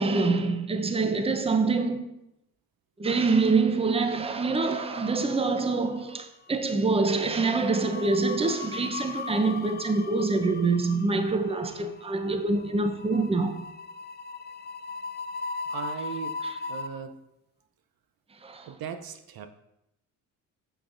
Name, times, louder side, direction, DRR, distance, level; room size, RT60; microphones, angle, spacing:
voice 1, 0.0-2.1 3.0-13.6 16.4-16.6 18.4-18.7, right 3 dB, 15° right, 0.7 m, -25 dB
sound 1, 4.8-5.6 5.9-6.1 7.3-16.9, left 4 dB, 25° left, 0.4 m, -38 dB
voice 2, 15.7-16.4 16.7-17.1 18.7-19.5, right 7 dB, 55° right, 0.6 m, -37 dB
6.1 x 6.0 x 2.5 m
supercardioid pair, 55°, 43 cm